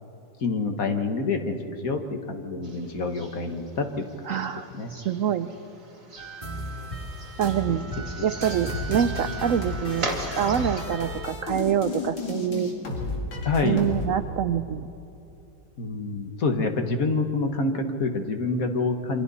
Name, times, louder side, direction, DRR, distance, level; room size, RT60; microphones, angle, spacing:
voice 1, 0.4-4.1 4.8-4.9 8.2-8.3 13.4-13.8 15.8-19.2, left 3 dB, 50° left, 6 dB, 1.7 m, -27 dB
sound 1, 2.6-10.8, right 2 dB, 45° right, 2.8 m, -39 dB
voice 2, 4.2-5.5 7.4-7.9 8.2-10.1 10.4-12.7 13.6-14.9, right 8 dB, 70° right, 10 dB, 0.8 m, -26 dB
sound 2, 6.2-11.3, right 1 dB, 15° right, 2.5 m, -35 dB
sound 3, 8.5-14.1, left 3 dB, 80° left, 3.0 m, -34 dB
28.5 x 24.5 x 4.2 m, 2.9 s
omnidirectional pair, 2.0 m